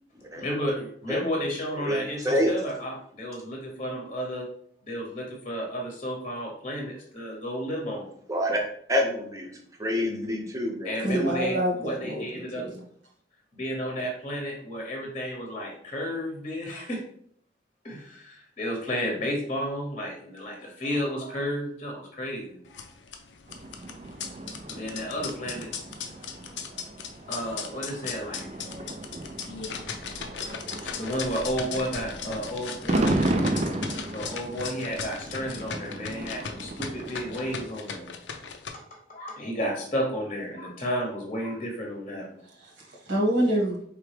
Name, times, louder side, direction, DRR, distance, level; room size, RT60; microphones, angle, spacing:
voice 1, 0.3-4.5 4.8-8.1 10.8-12.7 13.5-17.0 17.8-22.8 24.7-25.7 27.3-28.4 30.7-33.2 34.1-38.1 39.1-42.4, equal, 35° left, 0 dB, 0.9 m, -32 dB
voice 2, 1.8-2.5 8.3-11.3, equal, 15° right, 1 dB, 0.8 m, -28 dB
voice 3, 11.0-12.8 42.4-43.8, right 1 dB, 85° right, -2 dB, 1.5 m, -27 dB
sound 1, 22.7-38.7, left 6 dB, 65° left, 0.5 m, -38 dB
sound 2, 23.5-37.7, right 2 dB, 35° right, 0.4 m, -34 dB
4.6 x 3.4 x 3.3 m, 0.63 s
head